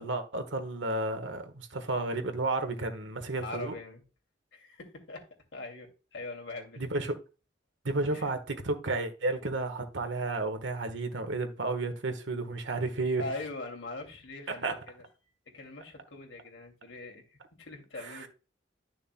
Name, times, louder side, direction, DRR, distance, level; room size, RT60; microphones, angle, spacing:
voice 1, 0.0-3.7 6.8-7.1 7.8-13.2 14.6-14.7 18.0-18.2, right 2 dB, 90° right, 1.3 m, -32 dB
voice 2, 3.4-4.0 4.5-5.2 5.5-7.0 8.1-8.3 13.2-15.0 15.5-18.3, left 2 dB, 85° left, 2.6 m, -42 dB
11.5 x 6.4 x 2.2 m
head